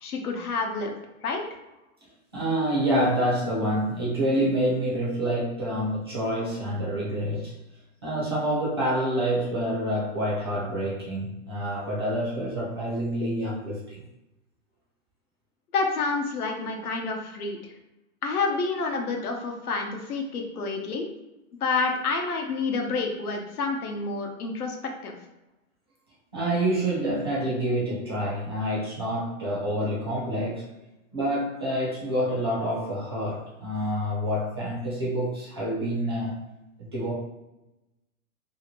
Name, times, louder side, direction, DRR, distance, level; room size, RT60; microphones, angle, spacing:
voice 1, 0.0-0.9 1.2-1.4 15.7-17.6 18.2-21.1 21.6-24.8 25.0-25.1, left 4 dB, 85° left, 2 dB, 0.9 m, -28 dB
voice 2, 2.3-7.5 8.0-14.0 20.5-20.6 26.3-30.7 31.1-36.4 36.8-37.1, equal, 20° right, -6 dB, 0.4 m, -27 dB
2.8 x 2.5 x 2.9 m, 0.96 s
hypercardioid pair, 155°, 43 cm